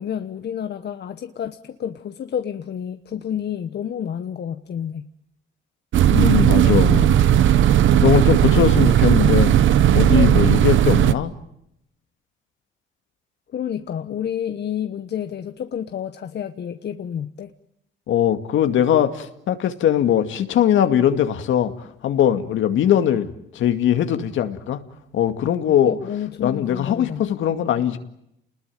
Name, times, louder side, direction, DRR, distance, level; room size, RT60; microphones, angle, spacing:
voice 1, 0.0-5.1 6.5-7.2 13.5-17.5 25.8-27.2, left 9 dB, 55° left, 9 dB, 1.2 m, -30 dB
sound 1, 5.9-11.1, right 11 dB, 75° right, 1.0 m, -16 dB
voice 2, 6.1-7.1 8.0-9.5 9.9-11.3 18.1-21.7 22.0-24.8 25.1-25.9 26.4-28.0, left 10 dB, 75° left, 8 dB, 2.2 m, -20 dB
29.5 x 20.5 x 9.2 m, 0.78 s
cardioid pair, 90°, 20 cm